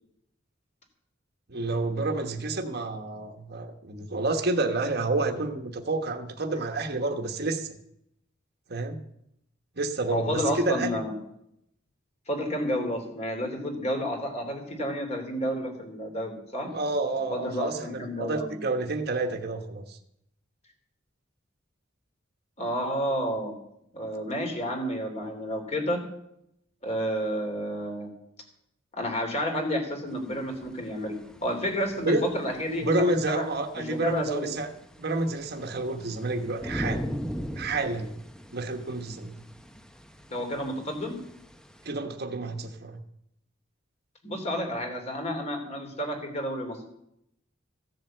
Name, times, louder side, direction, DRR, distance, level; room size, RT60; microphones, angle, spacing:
voice 1, 1.5-7.7 8.7-9.0 9.8-11.0 16.6-20.0 32.0-32.2 32.8-34.7 35.0-37.1 37.6-38.2 38.5-39.4 41.8-43.0, right 2 dB, 55° right, 5 dB, 1.2 m, -29 dB
voice 2, 10.1-11.1 12.3-16.7 17.3-18.7 22.6-23.5 23.9-26.0 26.8-28.1 28.9-31.1 31.4-33.5 33.7-34.5 40.3-41.2 44.2-46.9, equal, 35° left, 3 dB, 3.2 m, -30 dB
sound 1, 30.1-41.9, equal, 5° left, 0.7 m, -40 dB
15.5 x 7.8 x 7.7 m, 0.77 s
head